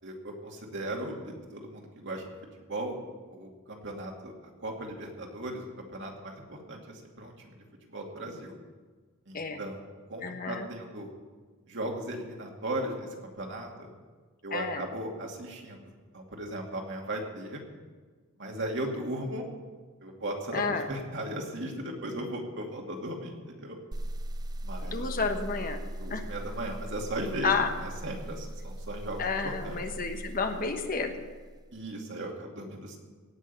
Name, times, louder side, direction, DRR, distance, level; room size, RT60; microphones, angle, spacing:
voice 1, 0.0-2.3 2.7-3.0 3.3-4.3 4.6-8.6 9.3-11.1 11.7-13.9 14.4-17.6 18.4-19.4 20.0-20.6 20.9-23.8 24.6-25.1 26.0-29.8 31.7-33.0, right 1 dB, 60° right, 1 dB, 2.5 m, -37 dB
voice 2, 10.2-10.7 14.5-14.9 20.5-20.9 24.8-25.8 26.1-26.2 27.4-27.7 29.2-31.3, left 4 dB, 40° left, 6 dB, 1.2 m, -31 dB
sound 1, 23.9-31.7, right 1 dB, 20° right, 0.4 m, -39 dB
17.5 x 6.3 x 8.8 m, 1.4 s
head